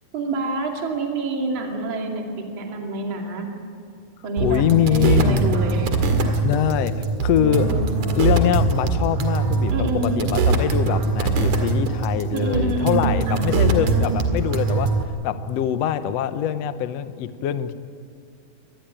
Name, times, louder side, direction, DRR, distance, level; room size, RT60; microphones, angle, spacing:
voice 1, 0.1-3.5 4.2-4.6 4.9-5.9 7.4-7.9 9.7-10.2 12.3-14.2, right 3 dB, 35° right, 1 dB, 3.0 m, -27 dB
voice 2, 4.4-5.4 6.4-7.7 8.2-17.7, left 10 dB, 75° left, 11 dB, 1.5 m, -23 dB
sound 1, 4.4-15.0, right 3 dB, 60° right, 3.2 m, -22 dB
25.5 x 19.5 x 9.1 m, 2.4 s
omnidirectional pair, 4.1 m